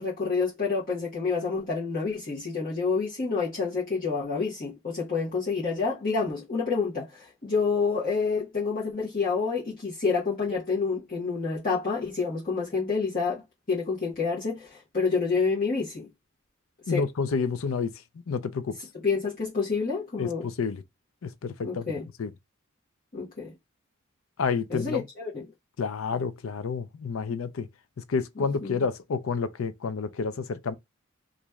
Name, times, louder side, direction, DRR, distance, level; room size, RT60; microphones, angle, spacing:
voice 1, 0.0-13.4 13.7-16.1 16.9-17.0 18.9-20.5 21.6-22.1 23.1-23.5 24.7-25.4 28.4-28.7, left 4 dB, 45° left, 1.3 m, -28 dB
voice 2, 16.9-17.9 18.3-18.8 20.2-20.8 21.2-21.8 22.2-22.3 24.4-25.0 25.8-27.7 28.1-30.7, left 5 dB, 80° left, 0.5 m, -29 dB
3.0 x 2.6 x 3.4 m
head